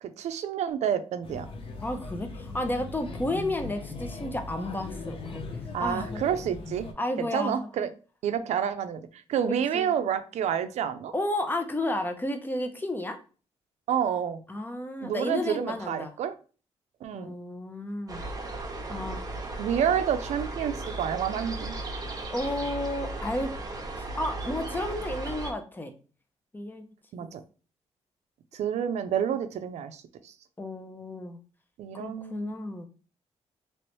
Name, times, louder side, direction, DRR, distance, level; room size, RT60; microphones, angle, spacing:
voice 1, 0.0-1.5 5.7-6.9 7.2-7.9 8.2-11.1 13.9-14.4 15.0-16.3 17.0-17.3 19.6-21.7 27.1-27.4 28.5-30.3 31.8-32.6, right 8 dB, 75° right, 10 dB, 0.4 m, -29 dB
Male speech man speaking / Child speech kid speaking / Chatter, 1.2-6.9, left 3 dB, 50° left, 0.8 m, -39 dB
voice 2, 1.8-5.4 5.8-6.2 7.0-7.7 9.5-9.9 11.1-13.2 14.5-16.1 17.1-18.2 18.9-19.2 22.3-23.5 24.2-25.9 26.5-26.8 27.2-27.3 30.6-31.4 31.9-32.9, left 1 dB, 15° left, 6 dB, 0.6 m, -32 dB
sound 1, 18.1-25.5, right 2 dB, 35° right, 0.8 m, -36 dB
3.1 x 2.9 x 3.0 m, 0.37 s
cardioid pair, 95°, 12 cm